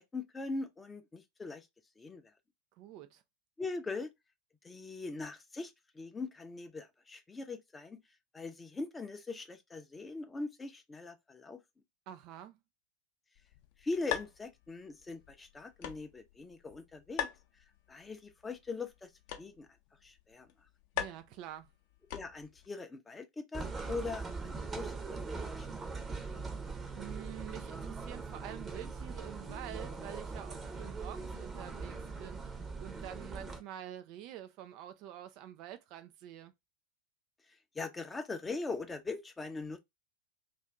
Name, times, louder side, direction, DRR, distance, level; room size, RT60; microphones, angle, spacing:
voice 1, 0.0-1.7 2.0-2.3 3.6-4.1 4.6-8.0 8.3-11.6 13.8-17.3 17.9-19.1 19.4-19.7 20.0-20.5 22.1-25.7 37.7-39.8, left 3 dB, 10° left, 0.6 m, -41 dB
voice 2, 2.7-3.2 12.1-12.6 21.0-21.7 26.9-36.5, right 12 dB, 40° right, 0.4 m, -47 dB
sound 1, 13.4-22.7, left 10 dB, 45° left, 0.7 m, -44 dB
sound 2, 23.5-33.6, right 4 dB, 20° right, 0.9 m, -41 dB
2.6 x 2.5 x 3.3 m
figure-of-eight pair, 90°, 0 cm